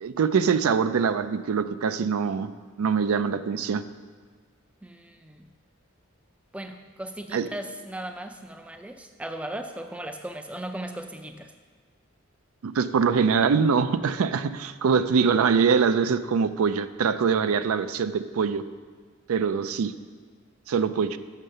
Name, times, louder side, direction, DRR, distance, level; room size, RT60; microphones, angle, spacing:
voice 1, 0.0-2.5 2.8-3.8 7.3-7.5 12.6-18.6 19.3-19.9 20.7-21.2, right 6 dB, 90° right, 12 dB, 0.4 m, -23 dB
voice 2, 4.8-5.5 6.5-11.5, right 1 dB, 5° right, 7 dB, 0.3 m, -37 dB
7.3 x 6.4 x 6.6 m, 1.5 s
head